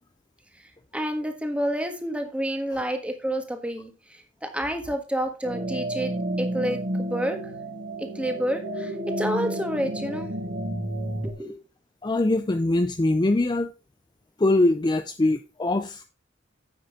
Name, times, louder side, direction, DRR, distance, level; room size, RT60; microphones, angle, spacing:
voice 1, 0.9-7.4 8.0-10.3 11.2-11.6, equal, 5° right, 1.6 m, -29 dB
sound 1, 5.4-11.3, right 1 dB, 65° right, 2.0 m, -31 dB
voice 2, 12.0-13.7 14.4-16.0, left 2 dB, 25° left, 0.5 m, -22 dB
10.0 x 7.7 x 3.7 m
head